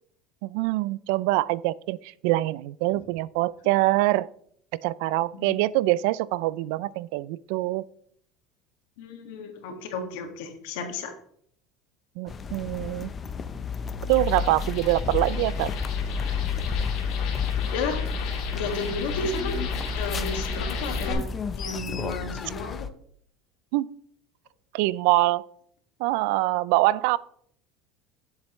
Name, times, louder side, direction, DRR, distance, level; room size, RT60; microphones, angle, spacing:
voice 1, 0.4-4.3 4.7-7.8 12.2-13.1 14.1-15.7 23.7-23.9 24.7-25.5 26.0-27.2, right 18 dB, 75° right, 21 dB, 0.3 m, -24 dB
voice 2, 5.3-5.6 9.0-11.1 17.7-18.1 18.5-19.6 19.9-21.2 21.6-22.9, left 3 dB, 85° left, 4 dB, 1.8 m, -33 dB
sound 1, 12.3-22.9, left 6 dB, 25° left, 0.6 m, -31 dB
sound 2, 14.0-21.1, left 4 dB, 60° left, 2.2 m, -36 dB
10.5 x 7.5 x 3.1 m, 0.64 s
cardioid pair, 140°, 0 cm